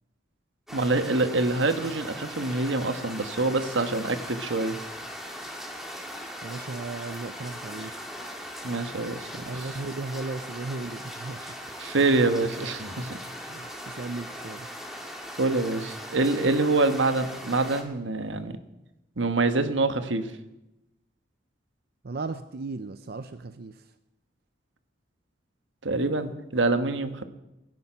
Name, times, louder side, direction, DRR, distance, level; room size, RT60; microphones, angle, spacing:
sound 1, 0.7-17.8, equal, ahead, 2.3 m, -39 dB
voice 1, 0.7-4.8 8.6-9.5 11.8-13.2 15.4-18.5 19.2-20.3 25.8-27.2, right 3 dB, 85° right, 9 dB, 1.3 m, -25 dB
voice 2, 6.4-7.9 9.4-11.4 13.0-13.1 13.4-14.7 22.0-23.9, right 3 dB, 55° right, 11 dB, 0.6 m, -36 dB
20.5 x 11.0 x 5.7 m, 0.95 s
head